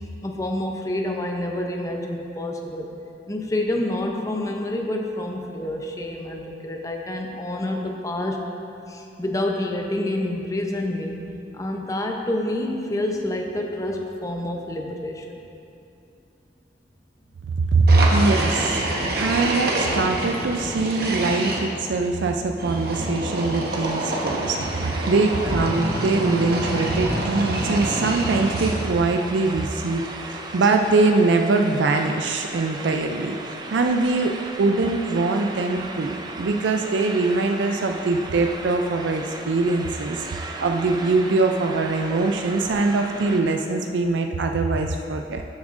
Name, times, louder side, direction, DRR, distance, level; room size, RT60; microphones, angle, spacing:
voice 1, 0.2-2.9 3.3-8.4 8.9-11.2 11.5-15.4, left 1 dB, 20° left, 2 dB, 0.6 m, -28 dB
voice 2, 17.7-18.8 19.2-45.4, right 3 dB, 90° right, 4 dB, 0.4 m, -22 dB
sound 1, 17.9-21.6 22.6-29.0, right 1 dB, 60° right, 1.0 m, -26 dB
sound 2, 23.6-43.4, right 2 dB, 25° right, 0.5 m, -37 dB
12.5 x 7.1 x 2.5 m, 2.7 s
head